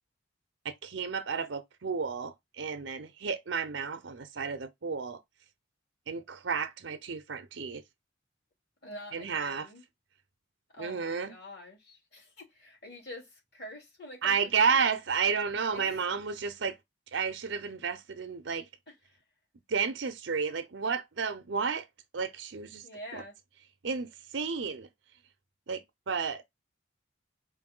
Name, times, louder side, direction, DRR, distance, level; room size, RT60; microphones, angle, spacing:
voice 1, 0.6-5.2 6.1-7.8 9.1-9.7 10.8-11.3 14.2-16.8 17.1-18.7 19.7-21.9 22.1-22.8 23.1-23.2 23.8-24.9 25.7-26.4, right 5 dB, 75° right, 0.7 m, -32 dB
voice 2, 8.8-9.8 10.7-14.8 15.7-16.1 22.8-23.3, left 1 dB, 55° left, 3.2 m, -46 dB
4.7 x 2.7 x 3.7 m
head